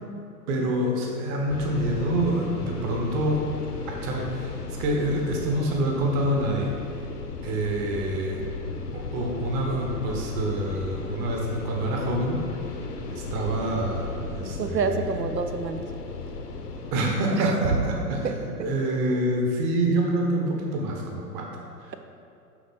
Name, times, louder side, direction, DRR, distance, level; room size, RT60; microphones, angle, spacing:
voice 1, 0.5-3.5 3.8-6.7 7.4-8.4 8.9-12.4 13.1-15.2 16.9-18.3 18.6-21.5 21.8-21.9, right 1 dB, 25° right, 0 dB, 1.1 m, -26 dB
sound 1, 1.5-17.1, left 3 dB, 65° left, 1.0 m, -36 dB
voice 2, 14.6-15.8 17.3-17.5 18.2-18.3, right 5 dB, 80° right, 8 dB, 0.7 m, -27 dB
11.0 x 3.9 x 4.0 m, 2.6 s
figure-of-eight pair, 110°, 49 cm